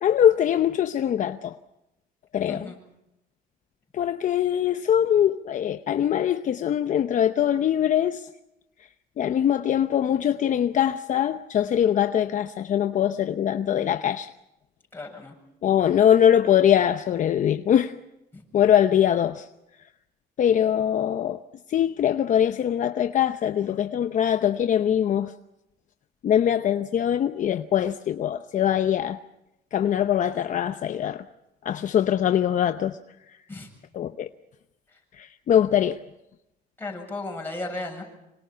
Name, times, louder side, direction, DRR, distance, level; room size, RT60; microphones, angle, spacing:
voice 1, 0.0-1.6 2.3-2.7 3.9-8.3 9.2-14.3 15.6-17.9 18.5-19.5 20.4-21.4 21.7-25.3 26.2-29.2 29.7-31.2 31.6-33.0 33.9-34.3 35.1-36.0, left 10 dB, 50° left, 0.8 m, -22 dB
voice 2, 14.9-15.3 18.3-18.4 33.5-33.7 36.8-38.0, left 2 dB, 15° left, 7.6 m, -35 dB
26.0 x 25.0 x 5.7 m
cardioid pair, 110°, 17 cm